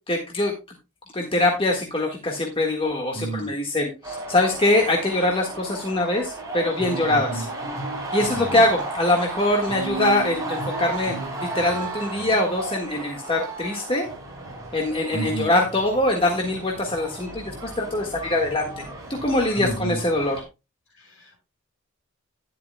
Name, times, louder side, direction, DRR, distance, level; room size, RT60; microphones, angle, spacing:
voice 1, 0.1-0.5 1.1-7.5 8.1-11.1 11.4-14.1 14.7-18.8 19.2-20.4, left 1 dB, 25° left, 1 dB, 1.6 m, -23 dB
voice 2, 3.1-3.5 7.1-7.4 8.3-8.7 15.1-15.5 19.5-20.0 20.9-21.4, right 2 dB, 60° left, 2 dB, 6.6 m, -31 dB
sound 1, 4.0-20.4, right 2 dB, 15° right, 4.7 m, -34 dB
11.5 x 11.0 x 2.2 m, 0.27 s
head